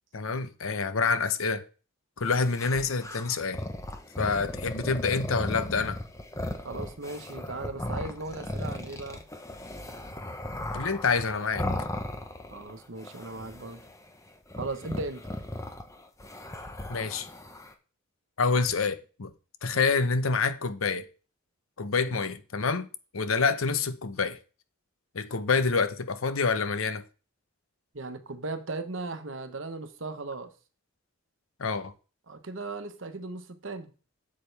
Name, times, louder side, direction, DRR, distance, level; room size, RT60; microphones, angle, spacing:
voice 1, 0.1-1.6 2.2-3.6 4.2-6.0 10.7-11.7 16.9-17.3 18.4-19.3 19.6-21.1 21.8-22.9 23.1-24.4 25.1-27.0 31.6-31.9, left 4 dB, 90° left, 0.8 m, -27 dB
sound 1, 2.3-12.7 13.0-14.0 14.5-17.7, left 1 dB, 15° left, 0.9 m, -37 dB
voice 2, 6.6-9.2 12.5-13.8 14.6-15.3 19.7-19.9 22.0-22.2 27.9-30.5 32.3-33.9, right 3 dB, 65° right, 1.1 m, -37 dB
8.7 x 7.6 x 3.4 m
head